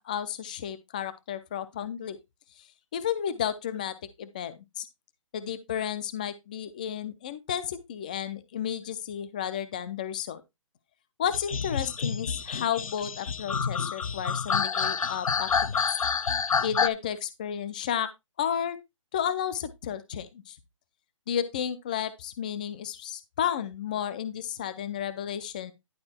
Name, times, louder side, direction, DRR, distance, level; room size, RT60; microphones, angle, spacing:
voice 1, 0.0-2.2 2.9-4.9 5.3-10.4 11.2-15.8 16.6-18.1 18.4-18.8 19.1-20.6 21.3-25.7, left 9 dB, 15° left, 0.4 m, -32 dB
sound 1, 11.3-16.9, left 6 dB, 90° left, 0.8 m, -28 dB
11.0 x 4.3 x 4.2 m
hypercardioid pair, 170°, 17 cm